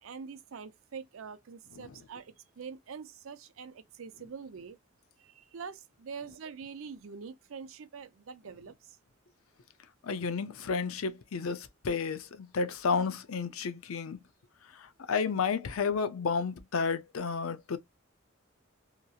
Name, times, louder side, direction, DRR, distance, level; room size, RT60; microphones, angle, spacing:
voice 1, 0.0-4.8 5.2-9.0, right 6 dB, 70° right, 0.5 m, -45 dB
voice 2, 10.0-14.2 15.1-17.8, left 5 dB, 90° left, 0.5 m, -31 dB
2.9 x 2.7 x 2.3 m
head